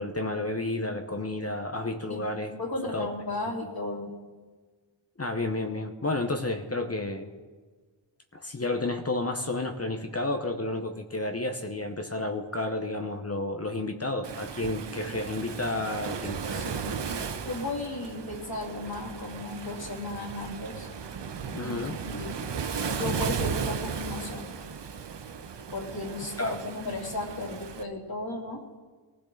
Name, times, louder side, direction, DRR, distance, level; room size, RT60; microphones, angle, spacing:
voice 1, 0.0-2.6 2.9-3.1 5.2-7.3 8.3-16.4 21.5-22.0 26.4-26.6, left 2 dB, 35° left, 5 dB, 1.1 m, -31 dB
voice 2, 2.5-4.1 16.5-16.9 17.4-20.9 21.6-22.4 22.9-24.5 25.7-28.6, left 2 dB, 55° left, -1 dB, 3.0 m, -35 dB
Waves surf, 14.2-27.8, right 6 dB, 65° right, 0.9 m, -35 dB
22.0 x 15.5 x 3.9 m, 1.4 s
wide cardioid pair, 90°, 45 cm